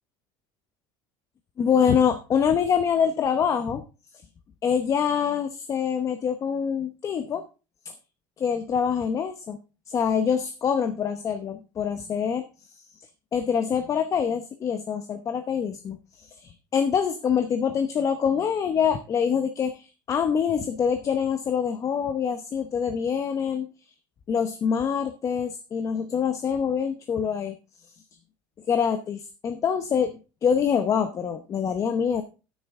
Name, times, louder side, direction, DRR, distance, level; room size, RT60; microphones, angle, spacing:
voice 1, 1.6-3.8 4.6-7.4 7.8-7.9 8.4-9.6 9.9-12.4 13.3-23.7 24.3-27.6 28.7-30.1 30.4-32.2, left 7 dB, 30° left, 8 dB, 0.8 m, -25 dB
9.8 x 9.2 x 3.6 m, 0.32 s
cardioid pair, 145°, 11 cm